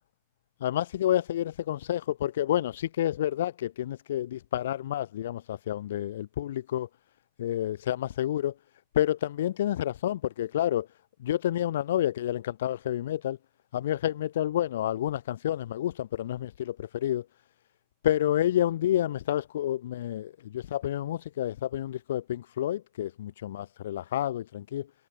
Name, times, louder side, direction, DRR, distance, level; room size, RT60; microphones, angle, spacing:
voice 1, 0.6-6.9 7.4-8.5 8.9-10.9 11.2-13.4 13.7-17.3 18.0-24.8, left 12 dB, 60° left, 0.3 m, -29 dB
figure-of-eight pair, 90°, 0 cm